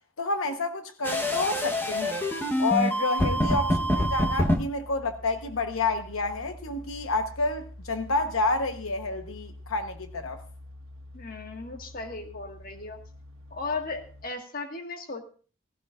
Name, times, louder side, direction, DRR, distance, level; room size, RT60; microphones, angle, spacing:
voice 1, 0.2-2.2 2.6-10.4, left 3 dB, 85° left, 1.0 m, -29 dB
sound 1, 1.0-4.6, equal, 10° left, 1.0 m, -26 dB
sound 2, 3.7-14.3, left 1 dB, 85° right, 1.4 m, -46 dB
voice 2, 11.1-13.0 13.5-15.2, left 3 dB, 45° left, 1.7 m, -36 dB
17.5 x 15.5 x 2.5 m
head